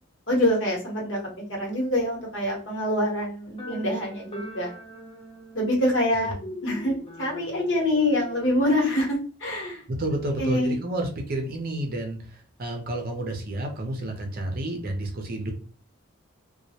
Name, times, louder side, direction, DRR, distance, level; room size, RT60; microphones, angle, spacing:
voice 1, 0.3-1.2 1.5-4.7 5.5-6.3 6.6-9.8 10.4-10.7, left 1 dB, 65° left, -3 dB, 1.0 m, -25 dB
sound 1, 3.6-9.1, left 1 dB, 25° left, 0.5 m, -41 dB
voice 2, 10.0-15.5, right 1 dB, 45° right, 2 dB, 0.5 m, -30 dB
2.2 x 2.1 x 2.7 m, 0.40 s
head